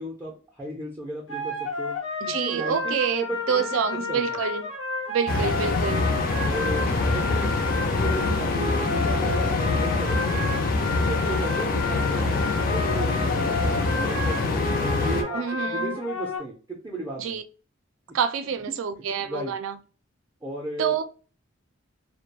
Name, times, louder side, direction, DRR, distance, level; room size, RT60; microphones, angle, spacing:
voice 1, 0.0-1.9 2.3-3.8 4.1-4.4 6.5-10.4 10.7-14.6 15.0-17.4 19.2-19.5 20.4-20.9, right 1 dB, 15° right, 0.4 m, -35 dB
sound 1, 1.3-16.4, left 3 dB, 85° left, 1.1 m, -31 dB
voice 2, 2.2-4.7 5.1-6.1 15.3-16.0 17.2-17.4 18.1-19.8 20.8-21.0, right 7 dB, 80° right, 0.4 m, -27 dB
sound 2, 5.3-15.2, left 3 dB, 45° left, 0.4 m, -25 dB
2.3 x 2.1 x 2.8 m
head